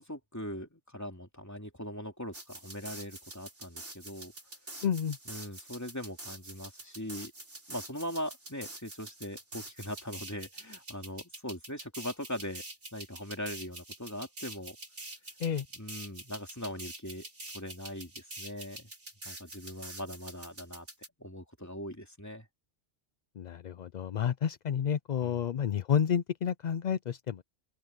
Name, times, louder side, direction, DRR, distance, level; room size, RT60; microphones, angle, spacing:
voice 1, 0.0-4.3 5.3-7.3 7.7-12.6 12.9-14.8 15.7-17.2 17.5-18.9 19.2-20.9 21.2-22.5 25.2-25.4, equal, 15° left, 3.0 m, -40 dB
sound 1, 2.3-21.1, right 2 dB, 75° right, 6.0 m, -46 dB
voice 2, 4.8-5.2 15.4-15.6 23.4-27.4, left 8 dB, 55° left, 0.5 m, -30 dB
open air
omnidirectional pair, 1.2 m